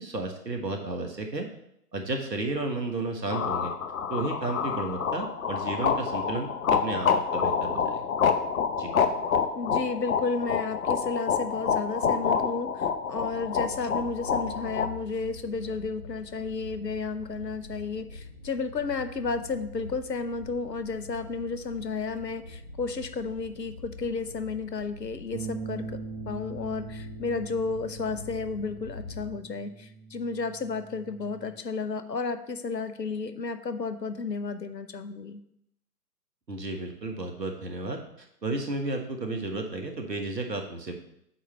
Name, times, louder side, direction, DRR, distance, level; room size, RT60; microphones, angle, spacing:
voice 1, 0.0-1.5 1.9-3.7 4.1-8.0 8.8-8.9 36.5-41.0, right 2 dB, 85° right, 3 dB, 1.5 m, -33 dB
sound 1, 3.3-14.9, left 6 dB, 55° left, 0.7 m, -27 dB
voice 2, 9.5-25.9 26.3-35.4, left 4 dB, 85° left, 10 dB, 0.8 m, -32 dB
sound 2, 13.2-29.3, left 2 dB, 25° left, 0.5 m, -45 dB
sound 3, 25.3-31.6, right 5 dB, 50° right, 1.0 m, -42 dB
8.6 x 3.2 x 5.8 m, 0.76 s
figure-of-eight pair, 135°, 49 cm